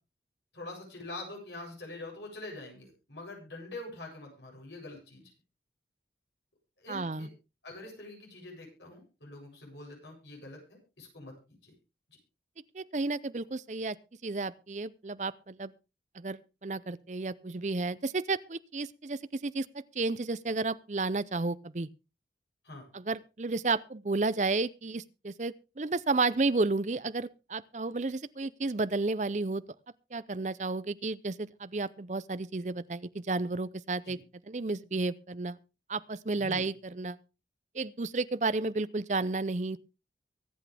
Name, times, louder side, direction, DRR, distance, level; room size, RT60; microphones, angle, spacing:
voice 1, 0.5-5.3 6.8-7.3 7.6-11.3 11.6-11.7 22.6-22.9 34.0-34.2 36.4-36.7, left 2 dB, 85° left, 7.9 m, -45 dB
voice 2, 6.9-7.3 12.7-14.0 14.2-15.7 16.1-21.9 22.9-29.6 30.1-34.2 34.5-35.6 35.9-37.2 37.7-39.8, right 3 dB, 40° right, 0.6 m, -32 dB
24.0 x 8.4 x 3.4 m
head